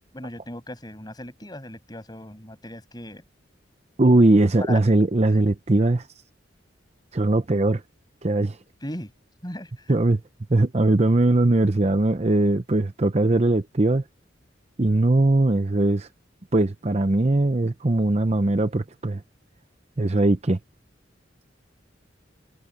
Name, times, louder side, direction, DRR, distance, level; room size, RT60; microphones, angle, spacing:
voice 1, 0.1-3.2 4.6-4.8 5.3-5.4 8.8-9.1 9.4-10.0, left 1 dB, 20° left, 7.1 m, -37 dB
voice 2, 4.0-6.1 7.1-7.8 8.2-8.6 9.9-10.2 10.5-14.0 14.8-16.1 16.5-19.2 20.0-20.6, right 2 dB, 35° right, 0.7 m, -20 dB
head